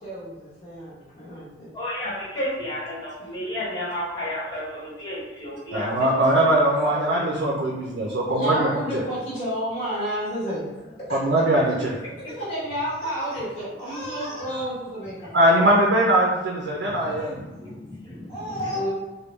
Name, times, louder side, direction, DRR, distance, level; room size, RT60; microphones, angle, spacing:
voice 1, 0.0-1.7 6.3-6.4 6.7-7.3 7.8-11.2 12.2-15.6 16.9-17.3 18.3-18.9, equal, 45° left, -8 dB, 1.1 m, -31 dB
voice 2, 1.7-5.9 11.7-11.8 16.9-17.2 17.6-18.7, left 1 dB, 25° left, -7 dB, 1.1 m, -32 dB
voice 3, 5.7-9.0 11.1-11.9 15.3-17.4, right 1 dB, 70° right, -3 dB, 0.5 m, -21 dB
3.4 x 2.2 x 3.1 m, 1.1 s
head